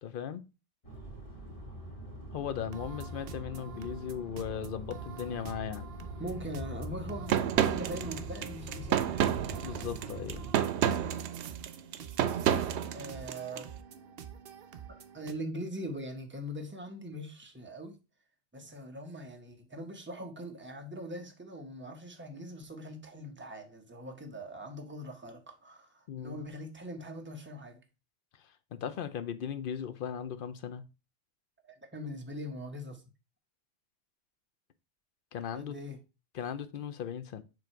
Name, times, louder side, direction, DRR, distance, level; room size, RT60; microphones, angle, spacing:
voice 1, 0.0-0.4 2.3-5.9 9.6-10.4 26.1-26.4 28.7-30.8 35.3-35.7 36.3-37.4, left 8 dB, 60° left, 0.7 m, -37 dB
sound 1, 0.8-10.5, right 1 dB, 30° left, 1.7 m, -43 dB
sound 2, 2.6-15.3, right 8 dB, 60° right, 0.8 m, -48 dB
voice 2, 6.2-9.2 12.9-13.7 15.1-18.0 18.5-27.8 31.6-33.0 35.5-36.0, equal, 10° right, 0.9 m, -42 dB
sound 3, 7.3-13.6, right 9 dB, 90° right, 0.9 m, -30 dB
7.1 x 3.1 x 4.4 m
omnidirectional pair, 1.1 m